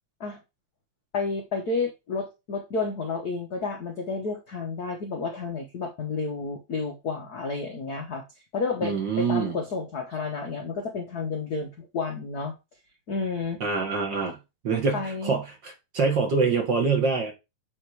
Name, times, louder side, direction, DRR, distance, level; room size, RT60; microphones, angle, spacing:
voice 1, 1.1-8.2 8.5-12.5 13.1-13.6 14.9-15.4, left 4 dB, 75° left, 0.8 m, -31 dB
voice 2, 8.8-9.6 13.6-14.4 14.6-17.3, right 4 dB, 50° right, 1.6 m, -25 dB
8.4 x 3.5 x 4.6 m
omnidirectional pair, 3.4 m